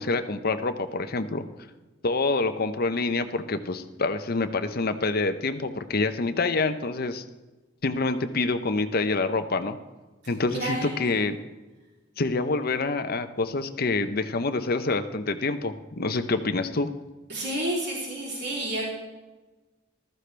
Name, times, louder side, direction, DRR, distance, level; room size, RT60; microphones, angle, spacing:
voice 1, 0.0-1.4 2.0-7.2 7.8-9.8 10.3-11.4 12.2-16.9, left 3 dB, 50° left, 9 dB, 0.8 m, -27 dB
voice 2, 10.5-11.1 17.3-18.9, right 1 dB, 60° right, -4 dB, 3.4 m, -30 dB
14.5 x 13.5 x 3.4 m, 1.2 s
head